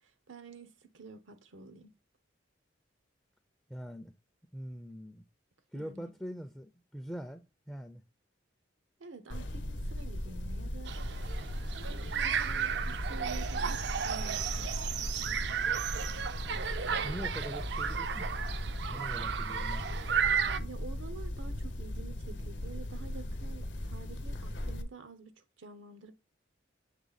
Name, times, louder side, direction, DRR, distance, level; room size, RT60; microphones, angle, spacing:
voice 1, 0.0-1.9 5.7-6.1 9.0-10.9 11.8-15.7 20.6-26.1, right 4 dB, 85° right, 0.8 m, -49 dB
voice 2, 3.7-4.1 4.5-5.2 5.7-8.0 17.0-18.5 18.9-19.8, equal, 5° left, 0.4 m, -43 dB
sound 1, 9.3-24.8, left 1 dB, 70° left, 0.8 m, -38 dB
sound 2, 10.9-20.6, right 7 dB, 60° right, 0.4 m, -34 dB
7.4 x 3.2 x 4.0 m
head